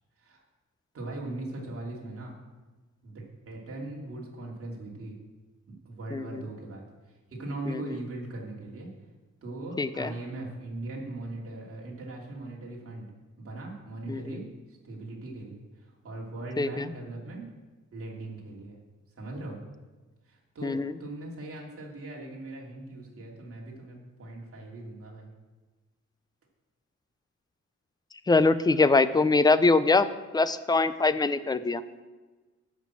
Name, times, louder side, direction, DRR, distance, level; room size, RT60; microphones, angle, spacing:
voice 1, 0.9-2.4 3.0-5.2 5.7-8.9 9.4-13.1 13.4-17.5 17.9-18.8 19.2-19.6 20.2-25.3, right 2 dB, 50° right, -2 dB, 2.9 m, -40 dB
voice 2, 6.1-6.4 7.7-7.8 9.8-10.1 14.1-14.4 16.6-16.8 20.6-20.9 28.3-30.1 30.3-31.8, left 3 dB, 15° left, 14 dB, 0.4 m, -23 dB
10.5 x 6.1 x 8.4 m, 1.3 s
wide cardioid pair, 160°, 30 cm